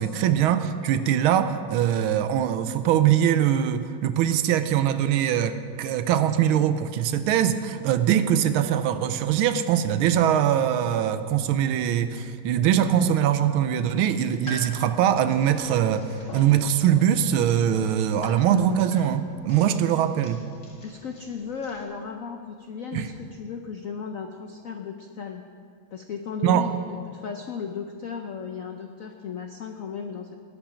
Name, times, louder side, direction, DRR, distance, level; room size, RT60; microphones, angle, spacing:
voice 1, 0.0-20.4 22.9-23.1 26.4-26.7, right 10 dB, 75° right, 11 dB, 1.4 m, -22 dB
sound 1, 14.2-21.8, equal, 35° left, 2.3 m, -43 dB
voice 2, 20.8-25.4 25.9-26.7 27.1-30.3, left 6 dB, 85° left, 4 dB, 0.7 m, -35 dB
19.5 x 8.6 x 5.1 m, 2.4 s
omnidirectional pair, 2.4 m